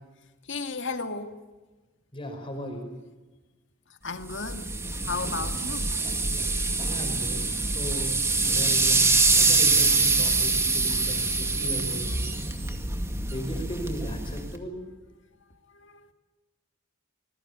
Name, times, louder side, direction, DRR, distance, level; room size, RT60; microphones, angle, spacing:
voice 1, 0.4-1.4 3.9-4.7 5.0-6.0 15.7-16.1, left 4 dB, 55° left, 7 dB, 2.2 m, -34 dB
voice 2, 2.1-2.9 6.8-7.4 7.6-8.2 8.4-12.3 13.3-14.8, equal, 25° left, 3 dB, 5.1 m, -36 dB
sound 1, 4.3-14.6, right 3 dB, 10° right, 2.1 m, -25 dB
26.0 x 21.0 x 8.2 m, 1.2 s
head